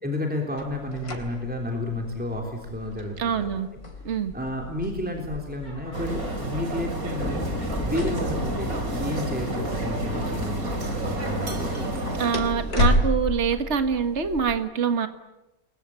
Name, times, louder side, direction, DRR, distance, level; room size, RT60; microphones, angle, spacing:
voice 1, 0.0-3.6 4.3-7.4 7.8-12.1, left 1 dB, 5° right, 1 dB, 3.5 m, -31 dB
sound 1, 0.6-14.5, left 1 dB, 90° left, 4.2 m, -32 dB
voice 2, 3.2-3.7 4.1-4.3 12.2-15.1, right 6 dB, 50° right, 9 dB, 1.8 m, -25 dB
sound 2, 5.9-12.8, right 2 dB, 70° right, 3.5 m, -30 dB
sound 3, 7.2-12.7, left 2 dB, 10° left, 0.7 m, -36 dB
30.0 x 22.5 x 8.9 m, 0.98 s
omnidirectional pair, 1.5 m